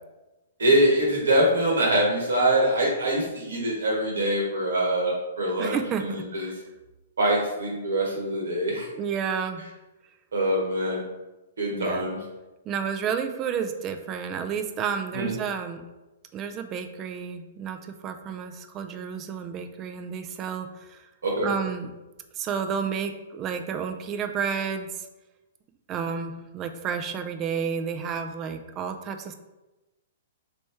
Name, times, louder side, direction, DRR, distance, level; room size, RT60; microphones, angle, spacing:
voice 1, 0.6-6.5 7.2-8.9 10.3-11.0 11.6-12.2 15.1-15.3 21.2-21.5, right 1 dB, 75° right, -2 dB, 1.2 m, -24 dB
voice 2, 5.6-6.0 6.4-6.5 9.0-9.6 11.7-12.1 12.7-15.8 16.3-21.1 21.4-21.9 22.3-25.1 25.9-29.3, right 7 dB, 30° right, 7 dB, 0.4 m, -31 dB
3.0 x 3.0 x 3.4 m, 1.1 s
figure-of-eight pair, 115°, 0 cm